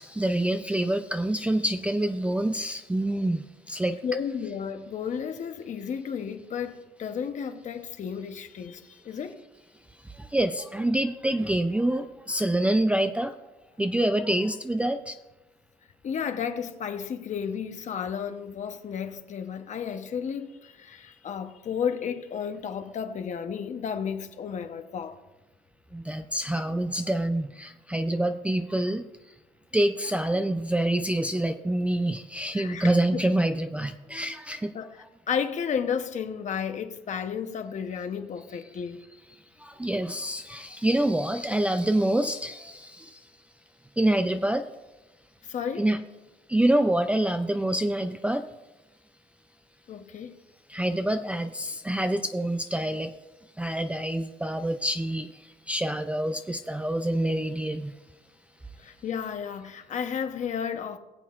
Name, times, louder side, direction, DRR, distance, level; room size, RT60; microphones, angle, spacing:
voice 1, 0.0-4.0 10.3-13.3 13.8-15.1 25.9-29.1 29.7-34.8 39.6-43.2 44.0-44.7 45.8-46.0 46.5-48.5 50.7-53.1 53.6-55.3 55.7-57.9, right 1 dB, 5° right, 0.4 m, -26 dB
voice 2, 4.0-9.4 16.0-25.2 32.5-33.0 34.7-39.0 45.4-45.9 49.9-50.4 58.8-61.0, left 7 dB, 45° left, 1.0 m, -33 dB
20.5 x 7.6 x 2.5 m
cardioid pair, 110°, 17 cm